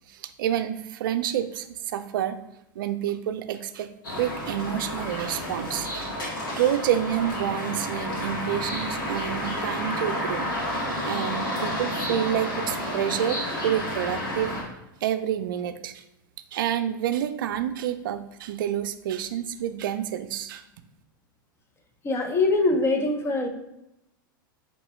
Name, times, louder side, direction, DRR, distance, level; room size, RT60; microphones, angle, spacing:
voice 1, 0.1-2.4 2.8-6.1 6.6-10.5 11.0-14.5 15.0-16.0 16.5-20.6, right 10 dB, 75° right, 10 dB, 0.4 m, -28 dB
sound 1, 4.0-14.6, left 1 dB, 85° left, 1.6 m, -30 dB
voice 2, 22.0-23.5, left 2 dB, 20° left, 4 dB, 0.7 m, -23 dB
5.0 x 3.0 x 3.0 m, 0.88 s
hypercardioid pair, 110°, 11 cm